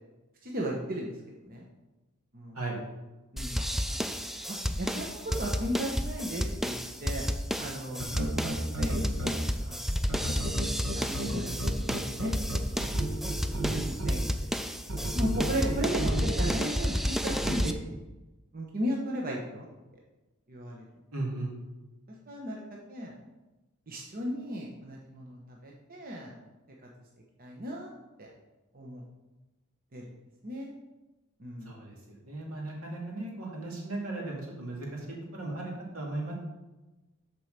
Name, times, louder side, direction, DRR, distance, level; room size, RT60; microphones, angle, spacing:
voice 1, 0.4-1.1 1.5-1.6 2.3-2.6 3.3-3.6 4.1-4.2 4.5-7.2 7.6-8.5 8.8-9.8 10.9-11.6 11.9-12.3 12.9-13.0 13.5-14.7 15.1-18.0 18.5-19.7 20.5-20.9 22.3-22.6 22.9-23.1 23.9-26.3 27.4-27.9 28.2-28.3 28.7-29.0 29.9-30.0 30.4-30.7 31.4-31.7, equal, 45° right, -1 dB, 1.0 m, -36 dB
sound 1, 3.4-17.7, equal, ahead, 0.3 m, -31 dB
sound 2, 8.0-9.3 10.1-14.1 14.9-16.5 17.3-17.5, right 1 dB, 65° right, 1.6 m, -32 dB
voice 2, 13.6-14.3 21.1-21.5 31.6-32.0 32.2-36.3, right 2 dB, 80° right, -2 dB, 2.3 m, -37 dB
7.7 x 4.6 x 6.6 m, 1.1 s
head